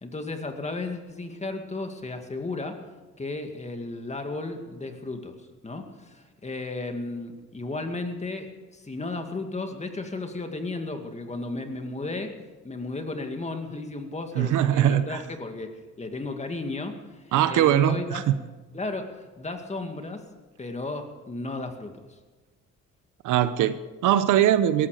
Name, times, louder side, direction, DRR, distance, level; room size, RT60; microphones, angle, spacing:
voice 1, 0.0-2.8 3.2-5.4 5.6-12.3 12.6-18.2 18.7-20.2 20.6-22.2, left 2 dB, 20° left, 5 dB, 2.2 m, -34 dB
voice 2, 14.3-15.2 17.3-18.3 23.2-24.9, right 11 dB, 80° right, 13 dB, 0.9 m, -21 dB
18.0 x 14.5 x 5.0 m, 1.2 s
cardioid pair, 90°, 30 cm